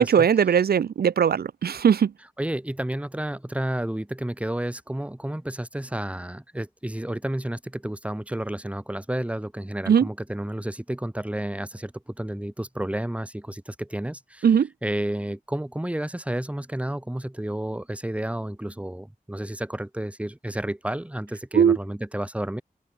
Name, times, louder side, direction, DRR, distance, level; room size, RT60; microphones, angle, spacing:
voice 1, 0.0-2.1 9.9-10.1 14.4-14.7 21.5-21.8, right 7 dB, 90° right, 0.5 m, -19 dB
voice 2, 2.4-14.5 14.8-22.6, right 1 dB, 10° right, 1.0 m, -31 dB
open air
cardioid pair, 45°, 16 cm